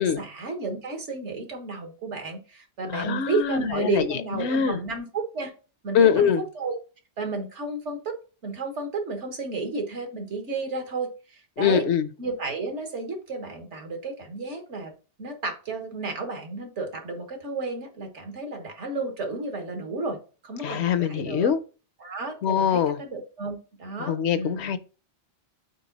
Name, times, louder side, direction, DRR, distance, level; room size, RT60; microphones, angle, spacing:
voice 1, 0.0-5.5 5.8-6.8 7.2-8.2 8.4-11.9 12.2-14.9 15.2-20.2 20.4-21.5 22.0-24.6, right 3 dB, 75° right, 1.7 m, -32 dB
voice 2, 2.9-4.8 5.9-6.4 11.6-12.1 20.6-21.6 22.4-23.0 24.0-24.8, left 8 dB, 70° left, 0.9 m, -23 dB
5.2 x 4.5 x 3.9 m
omnidirectional pair, 1.2 m